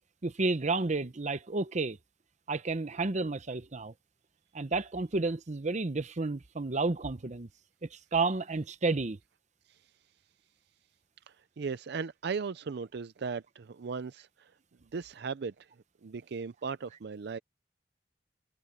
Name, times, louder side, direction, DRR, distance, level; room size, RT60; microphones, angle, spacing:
voice 1, 0.2-2.0 2.5-3.9 4.5-7.5 7.8-9.2, right 3 dB, 40° right, 0.8 m, -31 dB
voice 2, 11.3-14.5 14.9-15.7 16.0-17.4, right 5 dB, 65° right, 0.5 m, -37 dB
head